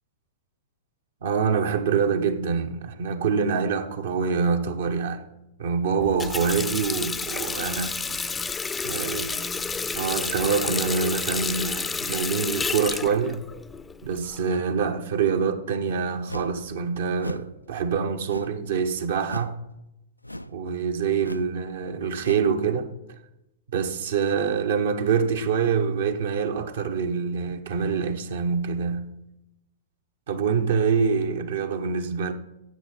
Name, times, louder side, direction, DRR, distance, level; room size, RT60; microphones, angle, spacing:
voice 1, 1.2-5.3 5.6-8.0 8.8-9.3 9.9-13.4 14.0-19.6 20.5-22.9 23.7-29.1 30.3-32.3, right 6 dB, 55° right, 1.0 m, -25 dB
Water tap faucet, 6.0-14.5, left 4 dB, 10° left, 0.6 m, -30 dB
sound 1, 16.3-16.6 17.2-17.5 18.3-18.7 19.2-19.6 20.2-20.6 21.2-21.5 22.2-22.5, equal, 90° left, 0.4 m, -37 dB
12.5 x 8.3 x 5.8 m
figure-of-eight pair, 105°, 0 cm